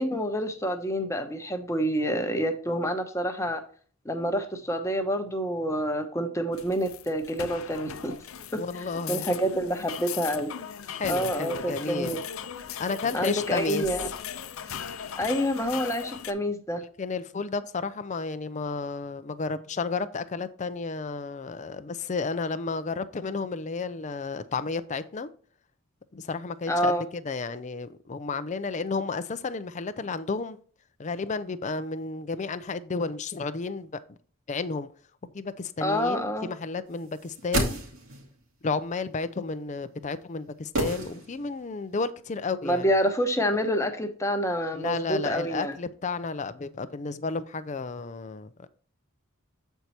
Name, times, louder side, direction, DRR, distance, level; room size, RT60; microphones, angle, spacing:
voice 1, 0.0-3.6 4.0-8.1 9.1-10.5 11.1-12.2 13.1-14.1 15.1-16.8 26.7-27.0 35.8-36.5 42.6-45.7, equal, 15° left, 1.0 m, -27 dB
sound 1, 6.5-16.3, left 8 dB, 90° left, 0.6 m, -38 dB
voice 2, 8.5-9.3 10.9-12.2 12.8-13.9 17.0-25.3 26.1-26.9 27.2-30.6 31.0-34.2 34.5-34.9 35.2-37.8 38.6-42.9 44.7-48.7, left 4 dB, 35° left, 0.5 m, -32 dB
sound 2, 37.1-38.4 40.7-41.7 41.9-42.0, right 1 dB, 80° right, 2.5 m, -30 dB
8.2 x 4.6 x 4.2 m
head